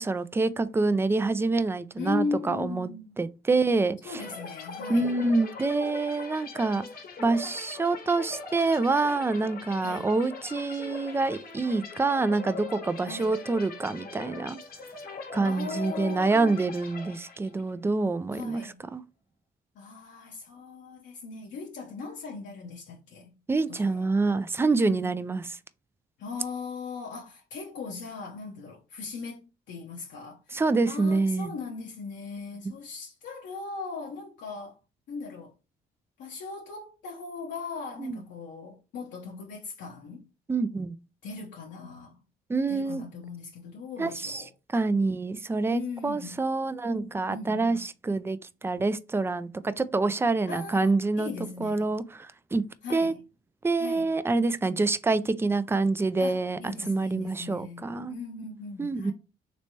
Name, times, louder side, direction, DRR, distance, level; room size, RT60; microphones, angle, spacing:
voice 1, 0.0-2.9 3.2-4.2 4.9-6.9 7.2-14.6 15.3-18.6 18.9-19.0 23.5-25.4 30.5-31.5 38.0-38.2 40.5-41.0 42.5-43.0 44.0-44.4 44.7-51.3 51.6-52.6 52.9-53.1 53.6-58.1 58.8-59.1, right 3 dB, 15° right, 0.3 m, -26 dB
voice 2, 2.0-3.2 4.0-5.1 9.8-10.1 13.0-13.4 15.4-16.6 18.3-18.8 19.7-23.3 23.7-24.1 24.7-25.2 26.2-34.8 35.1-35.5 36.2-40.2 41.2-42.2 42.7-44.5 45.7-46.4 47.3-47.8 50.5-51.9 52.8-53.2 53.8-54.1 56.2-59.1, left 4 dB, 75° left, 0.8 m, -39 dB
sound 1, 4.2-17.8, left 3 dB, 55° left, 0.9 m, -41 dB
3.2 x 3.1 x 2.7 m
cardioid pair, 80°, 19 cm